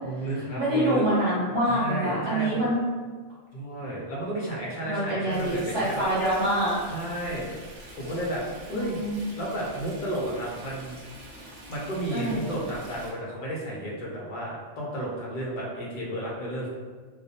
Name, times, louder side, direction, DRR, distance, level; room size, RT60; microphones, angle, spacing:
voice 1, 0.0-1.1 1.7-2.7 3.5-6.0 6.9-7.5 8.0-8.4 8.7-9.0 9.3-11.0 11.7-16.7, right 1 dB, 50° left, -5 dB, 0.8 m, -32 dB
voice 2, 0.6-2.8 4.8-6.7 8.7-9.3 12.1-12.4, right 1 dB, 25° right, -9 dB, 1.0 m, -26 dB
Stream, 5.3-13.1, right 1 dB, 55° right, 0.5 m, -45 dB
2.2 x 2.1 x 2.8 m, 1.5 s
omnidirectional pair, 1.2 m